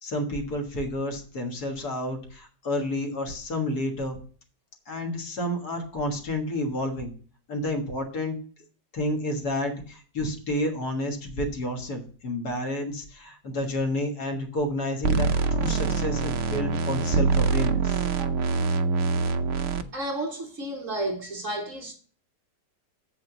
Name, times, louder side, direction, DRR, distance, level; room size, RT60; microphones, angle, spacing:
voice 1, 0.0-4.2 4.9-7.1 7.5-8.4 8.9-18.0, left 1 dB, 60° left, 2.1 m, -30 dB
sound 1, 15.0-19.8, right 4 dB, 60° right, 0.8 m, -24 dB
voice 2, 19.9-21.9, right 1 dB, 45° right, 2.3 m, -32 dB
7.6 x 5.9 x 6.1 m
omnidirectional pair, 1.9 m